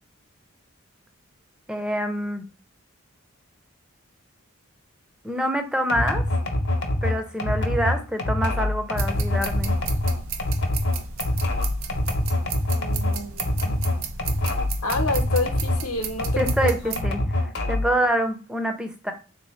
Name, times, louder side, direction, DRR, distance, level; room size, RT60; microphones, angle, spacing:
voice 1, 1.7-2.4 5.2-6.2 7.0-9.8 16.4-19.1, equal, 5° right, 6 dB, 0.4 m, -26 dB
sound 1, 5.9-15.9 16.2-18.0, left 1 dB, 55° left, 0.7 m, -25 dB
sound 2, 8.9-17.0, right 5 dB, 65° right, 0.4 m, -34 dB
voice 2, 12.7-13.8 14.8-17.0, left 2 dB, 85° left, 5 dB, 0.8 m, -29 dB
3.5 x 2.7 x 3.1 m, 0.35 s
head